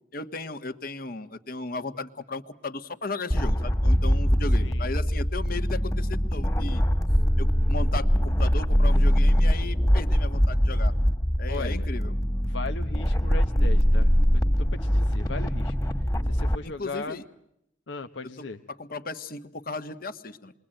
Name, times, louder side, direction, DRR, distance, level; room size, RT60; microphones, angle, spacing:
voice 1, 0.1-6.8 7.4-10.9 11.4-12.1 16.6-17.2 18.4-20.5, left 3 dB, 50° left, 10 dB, 1.6 m, -36 dB
sound 1, 3.3-16.6, equal, 20° left, 2.0 m, -23 dB
voice 2, 4.6-4.9 11.5-11.9 12.4-15.8 16.2-17.2 17.9-18.6, left 3 dB, 90° left, 7 dB, 1.1 m, -37 dB
29.0 x 22.5 x 9.0 m, 0.79 s
head